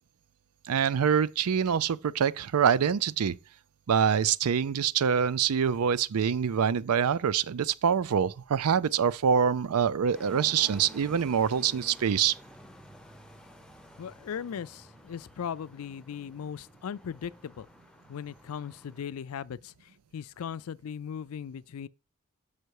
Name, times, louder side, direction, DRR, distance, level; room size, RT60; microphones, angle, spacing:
voice 1, 0.7-3.4 3.9-12.3, right 7 dB, 75° right, 0.4 m, -25 dB
sound 1, 10.1-19.0, equal, 5° left, 0.6 m, -51 dB
voice 2, 14.0-17.7 18.1-21.9, left 7 dB, 70° left, 0.4 m, -38 dB
6.6 x 5.5 x 4.7 m
head